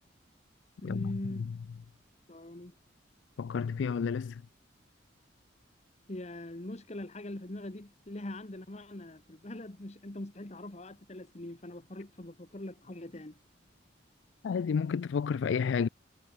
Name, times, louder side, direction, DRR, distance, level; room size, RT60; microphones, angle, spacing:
voice 1, 0.8-1.5 2.3-2.7 6.1-13.4, left 1 dB, 35° left, 1.3 m, -42 dB
voice 2, 3.4-4.4 14.4-15.9, left 6 dB, 80° left, 0.4 m, -30 dB
head